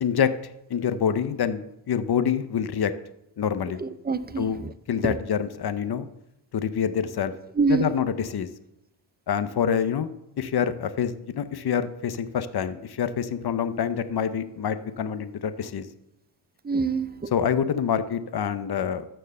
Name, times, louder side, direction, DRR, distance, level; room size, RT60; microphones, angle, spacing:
voice 1, 0.0-0.3 0.7-2.9 3.4-3.8 4.4-4.6 4.9-6.1 6.5-7.3 7.7-8.5 9.3-10.1 10.4-15.9 17.3-19.1, left 8 dB, 55° left, 12 dB, 0.8 m, -26 dB
voice 2, 3.8-4.7 5.0-5.2 7.6-7.9 16.6-17.3, right 4 dB, 20° right, 13 dB, 0.5 m, -26 dB
13.5 x 4.6 x 6.6 m, 0.86 s
wide cardioid pair, 95°, 46 cm